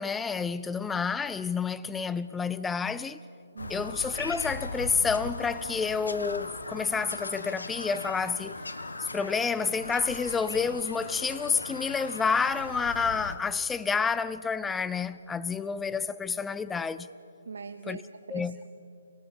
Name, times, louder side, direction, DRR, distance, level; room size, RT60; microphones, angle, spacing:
voice 1, 0.0-3.2 3.7-8.6 9.0-17.1 17.9-18.0 18.3-18.6, left 5 dB, 5° left, 0.5 m, -29 dB
voice 2, 3.5-3.9 17.5-18.7, right 5 dB, 60° right, 1.0 m, -42 dB
Bird vocalization bird call bird song, 3.6-13.4, left 2 dB, 70° left, 1.7 m, -38 dB
29.0 x 18.0 x 7.2 m
figure-of-eight pair, 135°, 0 cm